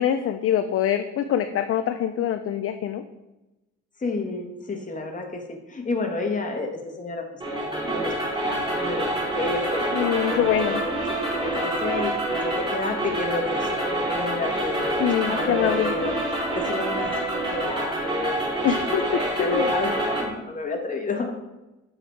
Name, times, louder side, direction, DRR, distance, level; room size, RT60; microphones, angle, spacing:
voice 1, 0.0-3.0 9.9-10.8 15.0-15.9 18.6-19.1 19.4-19.6, left 10 dB, 50° left, 9 dB, 0.4 m, -24 dB
voice 2, 4.0-17.1 17.5-21.3, left 3 dB, 25° left, 2 dB, 1.4 m, -31 dB
sound 1, 7.4-20.2, right 1 dB, 15° right, 2.4 m, -27 dB
7.6 x 4.0 x 4.5 m, 1.0 s
cardioid pair, 90°, 30 cm